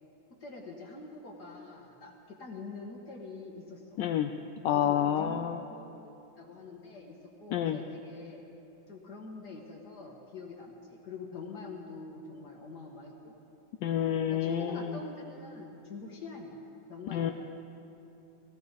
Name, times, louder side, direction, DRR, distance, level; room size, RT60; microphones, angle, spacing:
voice 1, 0.4-4.0 4.7-8.4 8.9-13.3 14.3-16.6 16.9-17.3, left 3 dB, 55° left, -1 dB, 1.9 m, -45 dB
voice 2, 4.0-4.3 4.6-5.6 7.5-7.8 13.8-14.8 17.1-17.3, left 10 dB, 75° left, 7 dB, 1.2 m, -28 dB
21.0 x 16.5 x 4.0 m, 2.9 s
omnidirectional pair, 2.2 m